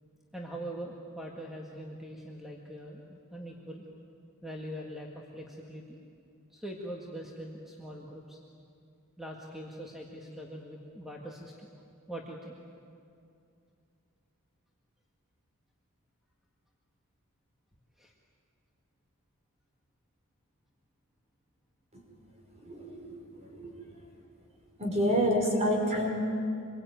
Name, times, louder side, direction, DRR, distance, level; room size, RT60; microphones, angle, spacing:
voice 1, 0.3-3.8 4.4-5.1 5.3-6.0 6.5-8.4 9.2-11.7 12.1-12.6 18.0-18.1, right 1 dB, ahead, -2 dB, 1.9 m, -42 dB
voice 2, 22.6-23.8 24.8-26.1, equal, 30° right, 0 dB, 5.4 m, -29 dB
26.0 x 22.0 x 9.3 m, 2.5 s
head